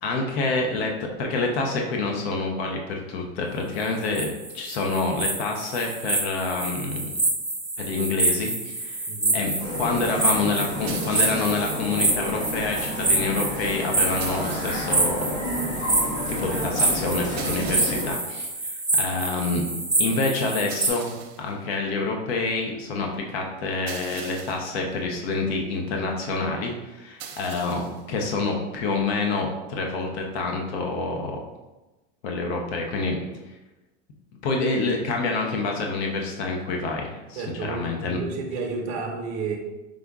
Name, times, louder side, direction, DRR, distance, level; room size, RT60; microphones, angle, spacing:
voice 1, 0.0-7.1 7.8-9.1 9.3-9.5 9.8-15.3 16.4-18.5 19.0-19.7 20.0-31.4 32.2-33.2 34.4-38.2, left 3 dB, 75° left, 1 dB, 0.8 m, -27 dB
sound 1, 3.8-20.9, right 2 dB, ahead, 0.5 m, -27 dB
voice 2, 9.1-9.4 37.3-39.6, right 4 dB, 45° right, 1 dB, 0.8 m, -31 dB
sound 2, 9.6-18.1, equal, 40° left, 0.9 m, -31 dB
sound 3, 10.9-11.8 14.2-15.0 17.4-18.3 20.7-21.5 23.9-24.8 27.2-28.0, right 7 dB, 80° right, 0.7 m, -41 dB
5.1 x 2.4 x 3.5 m, 1.1 s
supercardioid pair, 145°, 31 cm